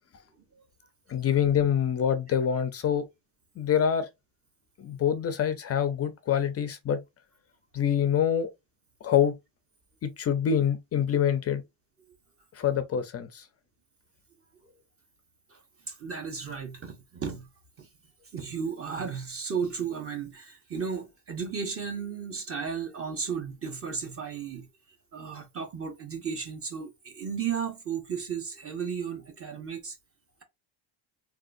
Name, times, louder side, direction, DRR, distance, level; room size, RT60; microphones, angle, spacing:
voice 1, 1.1-3.1 3.6-4.1 4.8-7.0 7.7-8.5 9.0-9.4 10.0-11.6 12.5-13.5, left 8 dB, 35° left, 0.4 m, -25 dB
voice 2, 15.9-17.5 17.8-17.9 18.3-24.7 25.1-30.0, right 6 dB, 30° right, 0.7 m, -34 dB
3.6 x 2.3 x 2.4 m
cardioid pair, 140°, 48 cm